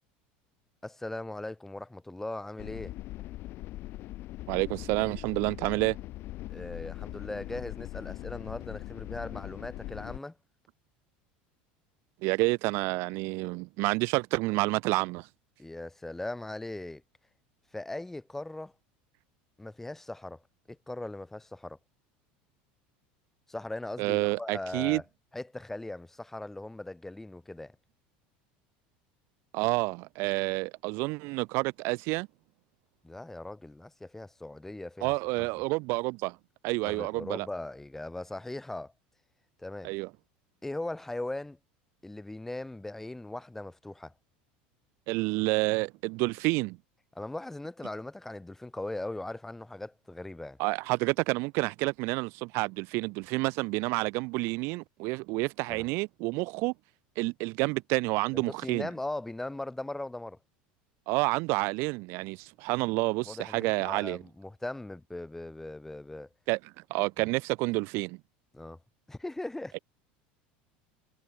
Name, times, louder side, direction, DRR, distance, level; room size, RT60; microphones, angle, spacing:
voice 1, 0.8-2.9 6.5-10.4 15.6-17.0 17.7-18.7 19.6-20.4 20.7-21.8 23.5-25.0 25.3-27.8 33.0-35.5 36.8-38.9 39.6-39.9 40.6-41.6 42.0-44.1 47.2-50.6 55.7-55.9 58.3-60.4 63.2-66.3 67.2-67.3 68.5-68.8 69.1-69.8, left 2 dB, 5° left, 1.7 m, -39 dB
sound 1, 2.6-10.2, left 16 dB, 55° left, 1.6 m, -41 dB
voice 2, 4.5-6.0 12.2-15.3 24.0-25.0 29.5-32.3 35.0-36.4 36.6-37.5 39.8-40.1 45.1-46.8 50.6-56.7 57.2-58.9 61.1-64.2 66.5-66.6 66.9-68.2, right 26 dB, 65° right, 0.7 m, -29 dB
supercardioid pair, 115°, 5 cm